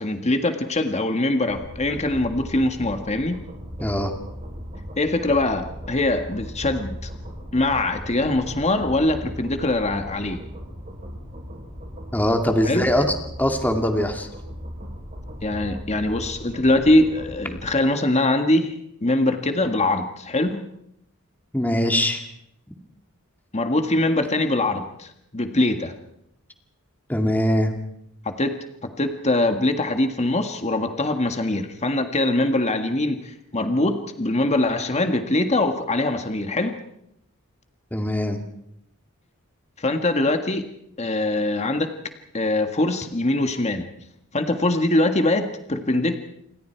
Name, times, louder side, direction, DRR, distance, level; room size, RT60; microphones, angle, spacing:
voice 1, 0.0-3.4 5.0-7.1 7.5-10.4 12.6-12.9 15.4-18.7 19.0-20.6 23.5-25.9 28.3-28.6 28.8-36.8 39.8-40.6 41.0-41.9 42.3-43.9 44.3-46.2, left 2 dB, 30° left, 6 dB, 1.8 m, -22 dB
sound 1, 1.5-17.6, equal, 35° right, 7.5 m, -38 dB
voice 2, 3.8-4.1 12.1-14.3 21.5-22.2 27.1-27.7 37.9-38.4, left 1 dB, 10° left, 4 dB, 2.3 m, -22 dB
29.0 x 24.5 x 4.7 m, 0.76 s
head